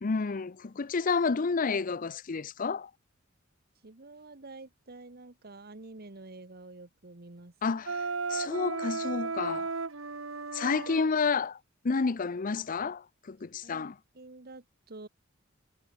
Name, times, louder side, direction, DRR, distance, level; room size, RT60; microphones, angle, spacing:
voice 1, 0.0-2.9 7.6-8.0 8.3-9.7 10.5-11.6 11.8-13.9, left 4 dB, 40° left, 0.5 m, -30 dB
voice 2, 3.8-7.8 13.6-13.9 14.1-15.1, right 2 dB, 50° right, 1.3 m, -48 dB
Wind instrument woodwind instrument, 7.9-11.1, right 4 dB, 75° right, 1.5 m, -34 dB
head